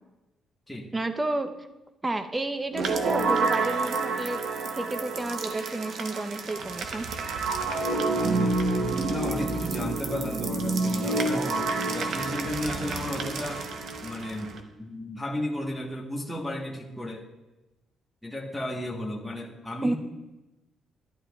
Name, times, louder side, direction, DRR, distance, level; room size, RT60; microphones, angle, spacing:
voice 1, 0.9-1.5 2.0-7.1 19.8-19.9, right 2 dB, 20° right, 8 dB, 0.7 m, -31 dB
sound 1, 2.7-14.6, right 3 dB, 70° right, 0.9 m, -28 dB
voice 2, 9.1-13.6 14.0-17.3 18.2-19.9, left 1 dB, 5° left, -3 dB, 1.3 m, -34 dB
11.5 x 11.5 x 2.4 m, 1.1 s
cardioid pair, 90°, 0 cm